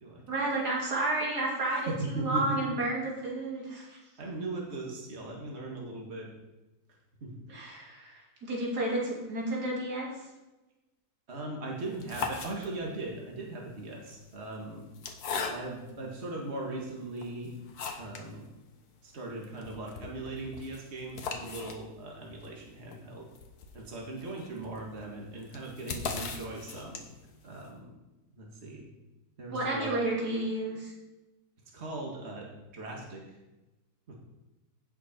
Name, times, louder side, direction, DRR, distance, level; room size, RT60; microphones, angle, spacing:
voice 1, 0.3-4.0 7.5-10.1 29.5-30.9, right 2 dB, 85° right, -3 dB, 3.0 m, -31 dB
voice 2, 1.9-2.8 4.2-6.3 7.2-7.4 11.3-14.9 15.5-17.6 18.0-18.5 19.0-23.3 23.7-27.0 27.4-27.9 28.3-28.9 29.4-29.9 31.7-33.4 34.1-34.2, right 2 dB, 45° right, -2 dB, 2.0 m, -39 dB
sound 1, 11.8-13.1 13.9-16.0 16.6-16.7 17.2-18.3 18.6-18.7 19.0-19.1 19.4-27.3, left 5 dB, 75° left, 1.6 m, -39 dB
16.0 x 5.6 x 4.4 m, 1.0 s
omnidirectional pair, 1.7 m